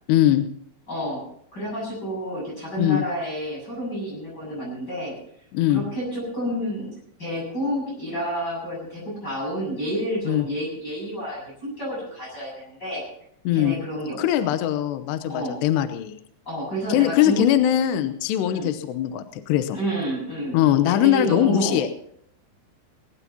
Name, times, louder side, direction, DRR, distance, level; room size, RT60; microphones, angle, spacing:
voice 1, 0.1-0.5 2.8-3.0 5.5-5.8 10.3-10.5 13.5-13.7 14.2-16.2 16.9-19.8 20.5-21.9, left 12 dB, 75° left, 10 dB, 2.8 m, -21 dB
voice 2, 0.9-1.2 1.5-5.2 5.7-6.9 7.2-13.0 13.5-14.5 15.3-15.6 16.5-17.5 18.5-18.7 19.7-21.8, equal, 20° left, -4 dB, 8.1 m, -30 dB
20.0 x 18.5 x 2.9 m, 0.67 s
omnidirectional pair, 5.4 m